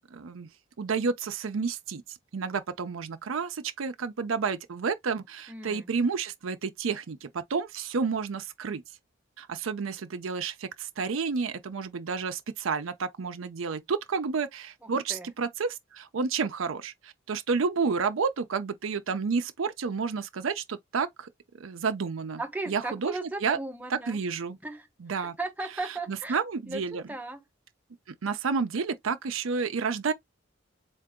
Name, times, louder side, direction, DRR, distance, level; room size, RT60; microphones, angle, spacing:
voice 1, 0.1-0.5 0.8-8.8 9.4-21.3 21.6-22.4 22.7-23.6 23.9-24.6 25.0-25.4 25.9-27.0 28.1-30.1, right 5 dB, 85° right, 0.5 m, -30 dB
voice 2, 5.5-5.9 14.8-15.3 22.4-24.2 24.6-24.9 25.2-26.4 26.7-27.4, right 2 dB, 10° right, 0.9 m, -36 dB
3.8 x 2.5 x 3.6 m
head